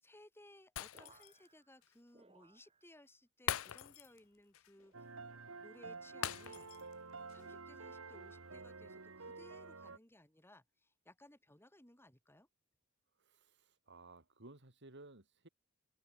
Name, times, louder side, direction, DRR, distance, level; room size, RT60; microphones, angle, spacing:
voice 1, 0.0-5.1 5.5-6.7 7.3-12.5, left 1 dB, 10° left, 5.6 m, -62 dB
Shatter, 0.8-1.5 1.8-1.9 3.5-4.2 4.5-4.7 6.2-6.9 7.3-7.4, left 10 dB, 70° left, 0.5 m, -42 dB
sound 1, 0.9-3.2 3.4-4.3 4.8-5.5 6.1-6.6 7.4-7.8 8.7-9.0, right 3 dB, 30° right, 8.0 m, -69 dB
sound 2, 4.9-10.0, right 4 dB, 80° right, 2.0 m, -50 dB
voice 2, 13.2-15.5, right 2 dB, 60° right, 3.0 m, -57 dB
head